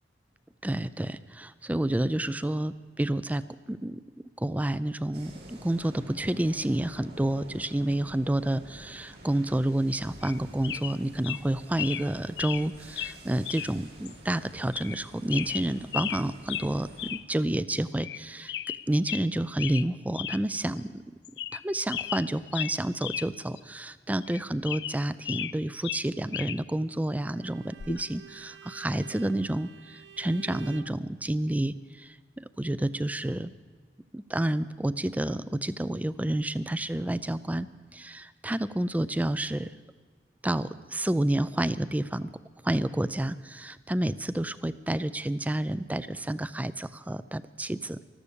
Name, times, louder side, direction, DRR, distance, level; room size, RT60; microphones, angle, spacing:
voice 1, 0.6-21.0 21.5-33.5 34.1-39.7 40.4-42.3 42.6-48.0, right 1 dB, 10° right, 15 dB, 0.3 m, -29 dB
sound 1, 5.1-17.1, right 1 dB, 60° right, 2.8 m, -49 dB
sound 2, 10.2-10.4 10.6-11.0 11.2-11.4 11.8-12.1 12.4-12.6 13.0-13.1 13.4-13.7 14.0-14.1 14.7-15.0 15.3-16.2 16.5-16.7 17.0-17.2 17.5-17.6 18.0-18.2 18.5-19.2 19.6-19.9 20.1-20.4 20.8-20.9 21.2-21.6 21.9-23.3 23.6-23.7 24.2-25.5 25.8-26.6 27.8-28.0, left 11 dB, 65° left, 0.4 m, -35 dB
Bowed string instrument, 27.3-31.0, right 9 dB, 80° right, 0.5 m, -50 dB
13.5 x 13.0 x 6.9 m, 1.4 s
head